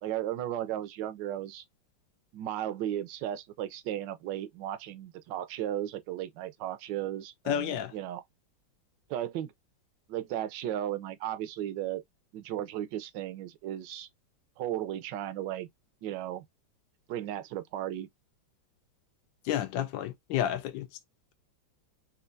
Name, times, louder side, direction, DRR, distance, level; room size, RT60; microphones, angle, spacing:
voice 1, 0.0-1.6 2.3-8.2 9.1-9.5 10.1-12.0 12.3-14.1 14.6-15.7 16.0-16.5 17.1-18.1, right 12 dB, 75° right, 1.2 m, -35 dB
voice 2, 7.5-7.9 19.5-20.9, left 10 dB, 75° left, 1.3 m, -30 dB
4.4 x 2.5 x 2.5 m
omnidirectional pair, 2.1 m